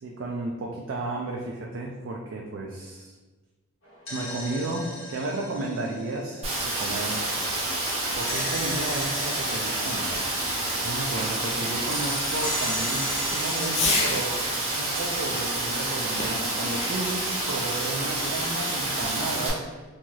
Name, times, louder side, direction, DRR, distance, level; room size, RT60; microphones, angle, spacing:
voice 1, 0.0-3.1 4.1-7.3 8.1-10.3 10.8-14.5 14.8-19.7, right 2 dB, 55° right, -1 dB, 0.3 m, -33 dB
sound 1, 3.8-7.5 8.2-11.4 11.8-15.2, equal, 70° left, 1.1 m, -37 dB
Rain, 6.4-19.5, right 2 dB, 30° right, 0.7 m, -28 dB
Fireworks, 6.7-14.4 16.2-17.2, left 2 dB, 30° left, 0.4 m, -35 dB
2.7 x 2.3 x 3.0 m, 1.3 s
head